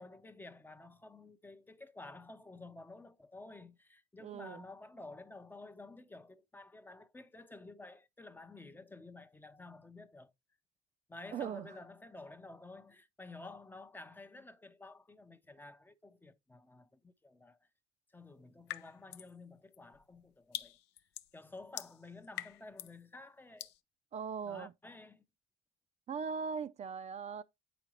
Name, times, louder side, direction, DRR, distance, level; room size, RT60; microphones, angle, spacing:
voice 1, 0.0-10.3 11.1-17.7 18.1-20.8 21.3-23.7 24.4-25.2, left 2 dB, 10° left, 0.5 m, -52 dB
voice 2, 4.2-4.6 11.3-11.8 24.1-24.7 26.1-27.4, right 6 dB, 40° right, 0.4 m, -39 dB
sound 1, 18.7-19.3 19.7-23.0 23.6-23.8, left 14 dB, 85° left, 0.5 m, -45 dB
8.3 x 5.0 x 3.0 m
cardioid pair, 110°, 17 cm